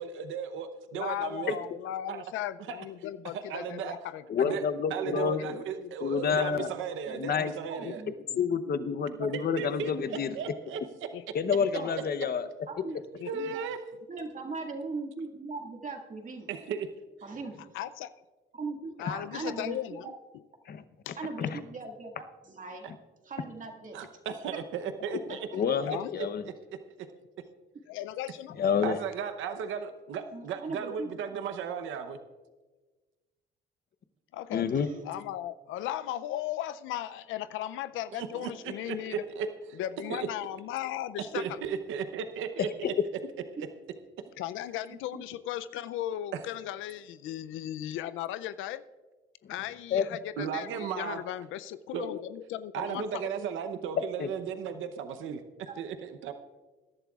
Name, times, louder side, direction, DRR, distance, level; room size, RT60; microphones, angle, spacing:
voice 1, 0.0-1.6 2.1-2.2 2.7-2.8 3.3-3.9 4.4-4.6 4.9-8.0 9.3-10.8 13.2-13.8 16.5-16.9 23.9-26.3 28.8-32.2 38.2-38.5 38.9-39.8 40.1-40.3 41.3-42.9 50.4-51.2 51.9-52.1 52.7-55.4 55.8-56.3, right 7 dB, 85° right, 8 dB, 0.8 m, -35 dB
voice 2, 0.9-4.6 5.1-5.9 7.8-8.4 11.1-12.0 13.2-13.5 17.7-18.1 19.0-20.1 21.0-21.2 25.8-26.2 27.9-28.6 34.3-34.7 35.0-39.2 39.7-41.6 44.4-48.8 49.5-53.2, left 12 dB, 90° left, 14 dB, 0.4 m, -37 dB
voice 3, 4.3-5.5 6.0-6.7 7.1-7.5 8.4-10.3 11.3-12.5 20.7-20.8 21.4-21.6 25.5-26.4 28.6-29.0 34.5-34.9 42.8-42.9 49.9-50.0 54.2-54.3, left 6 dB, 50° left, 11 dB, 0.8 m, -28 dB
voice 4, 7.7-8.1 9.2-9.3 11.4-11.9 12.7-13.0 13.3-13.6 14.1-16.5 17.2-17.6 18.5-19.8 21.2-22.9 23.3-24.0 24.5-24.6 30.3-31.4 34.8-35.0 45.1-45.2 55.2-55.4 55.7-55.8, right 3 dB, 40° right, 2 dB, 1.9 m, -39 dB
21.0 x 11.0 x 2.4 m, 1.3 s
cardioid pair, 90°, 20 cm